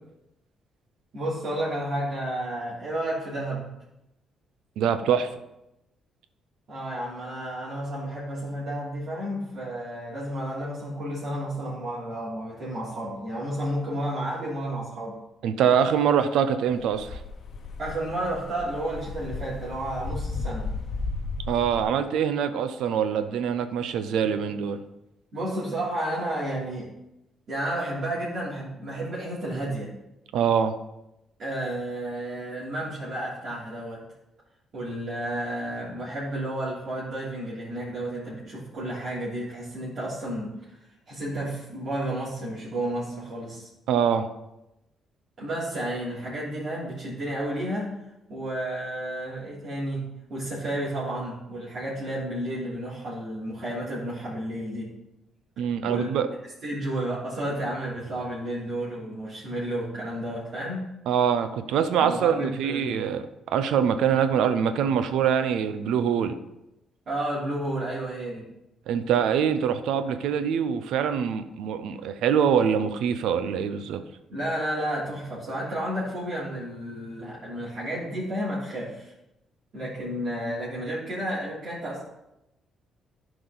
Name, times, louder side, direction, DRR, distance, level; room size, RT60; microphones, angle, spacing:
voice 1, 1.1-3.6 6.7-15.2 17.8-20.7 25.3-26.9 27.5-29.9 31.4-34.0 34.7-40.5 41.1-43.7 45.4-47.9 48.3-50.0 50.3-54.9 55.8-56.1 56.6-60.9 62.0-63.0 67.1-68.4 74.3-79.1 79.7-82.0, right 1 dB, 55° right, -9 dB, 3.3 m, -31 dB
voice 2, 4.8-5.3 15.4-17.2 21.5-24.8 30.3-30.7 43.9-44.3 55.6-56.3 61.1-66.4 68.9-74.0, right 8 dB, 85° right, 11 dB, 0.6 m, -24 dB
sound 1, 16.8-21.8, left 3 dB, 60° left, 0.9 m, -34 dB
11.0 x 5.0 x 4.0 m, 0.90 s
cardioid pair, 90°, 0 cm